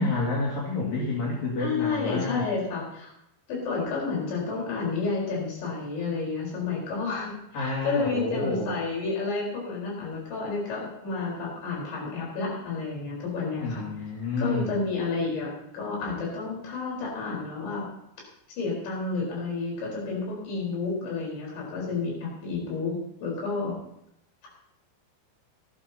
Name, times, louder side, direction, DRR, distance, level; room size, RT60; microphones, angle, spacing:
voice 1, 0.0-2.5 7.5-8.8 13.6-14.8, left 3 dB, 50° left, -4 dB, 2.9 m, -29 dB
voice 2, 1.6-3.1 3.5-13.8 14.4-17.8 18.6-23.8, left 4 dB, 75° left, -3 dB, 6.5 m, -30 dB
18.5 x 12.5 x 2.8 m, 0.80 s
omnidirectional pair, 5.2 m